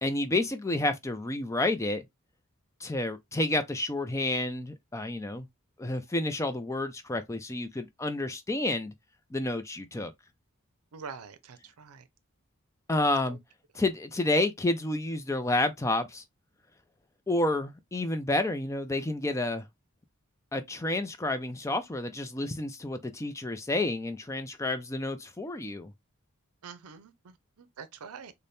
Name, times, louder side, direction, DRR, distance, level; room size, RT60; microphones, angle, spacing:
voice 1, 0.0-2.1 2.8-5.5 5.8-8.9 9.3-10.1 12.9-13.4 13.7-16.2 17.3-19.7 20.5-25.9, left 2 dB, 15° left, 0.4 m, -30 dB
voice 2, 10.9-12.1 26.6-28.3, right 6 dB, 85° right, 0.6 m, -45 dB
4.0 x 2.1 x 3.3 m
head